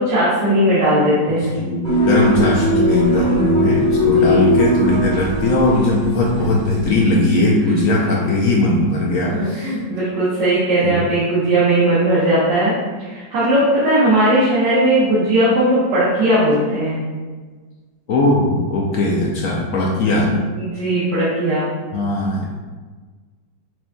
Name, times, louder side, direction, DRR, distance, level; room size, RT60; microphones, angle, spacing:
voice 1, 0.0-1.5 3.1-3.4 4.0-4.5 7.9-8.0 9.3-12.7 13.0-17.0 20.2-21.7, right 1 dB, 75° right, -9 dB, 1.6 m, -18 dB
voice 2, 1.3-9.7 10.8-11.0 18.1-20.3 21.9-22.5, left 2 dB, 75° left, -3 dB, 0.8 m, -19 dB
sound 1, 1.8-7.0, left 1 dB, 35° right, 1.3 m, -19 dB
5.9 x 2.6 x 2.2 m, 1.4 s
omnidirectional pair, 1.9 m